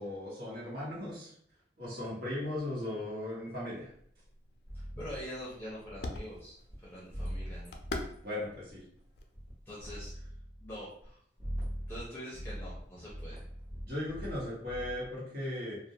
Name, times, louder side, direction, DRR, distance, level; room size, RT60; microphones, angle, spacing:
voice 1, 0.0-1.3 1.8-3.9 8.2-8.8 13.8-15.8, left 1 dB, 60° right, -7 dB, 1.2 m, -37 dB
sound 1, 3.9-10.2, left 2 dB, 65° left, 0.3 m, -46 dB
voice 2, 4.7-7.8 9.7-10.1 10.6-11.2 11.9-13.4, equal, 10° left, -8 dB, 0.6 m, -44 dB
sound 2, 4.7-6.4 6.7-6.8 7.1-8.1 8.5-9.0 9.3-9.5 9.8-11.1 11.4-12.0 12.3-15.1, equal, 30° right, 0.9 m, -42 dB
2.4 x 2.1 x 2.7 m, 0.64 s
head